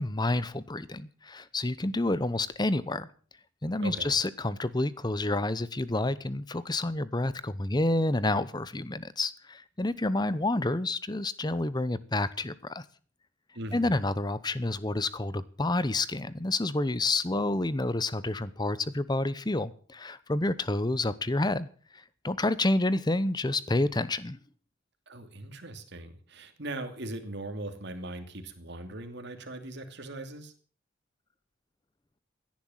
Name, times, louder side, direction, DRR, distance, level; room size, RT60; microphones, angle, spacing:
voice 1, 0.0-3.1 3.6-12.8 13.7-21.7 22.2-24.4, left 2 dB, 20° left, 17 dB, 0.8 m, -29 dB
voice 2, 3.8-4.2 13.5-13.9 25.1-30.5, right 2 dB, 55° right, 7 dB, 2.6 m, -40 dB
16.5 x 10.5 x 7.4 m, 0.42 s
head